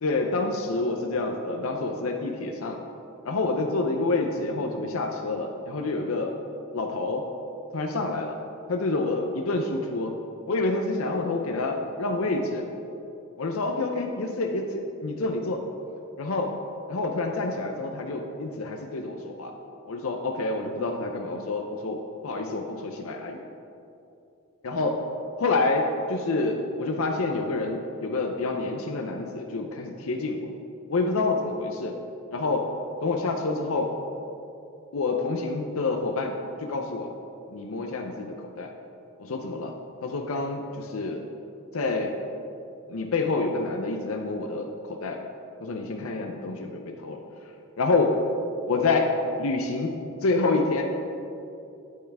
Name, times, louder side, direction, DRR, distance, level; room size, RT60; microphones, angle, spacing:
voice 1, 0.0-2.8 3.2-6.4 6.7-7.3 7.7-8.4 8.7-10.2 10.5-12.7 13.4-15.7 16.2-16.5 16.9-19.6 19.9-23.4 24.6-25.0 25.4-30.5 30.9-32.0 32.3-32.7 33.0-33.9 34.9-37.1 37.5-38.7 39.2-39.7 40.0-41.3 41.7-42.2 42.9-45.2 45.6-47.2 47.8-48.2 48.7-50.0 50.2-50.8, left 3 dB, 75° left, 3 dB, 0.6 m, -28 dB
8.7 x 8.2 x 3.4 m, 2.7 s
head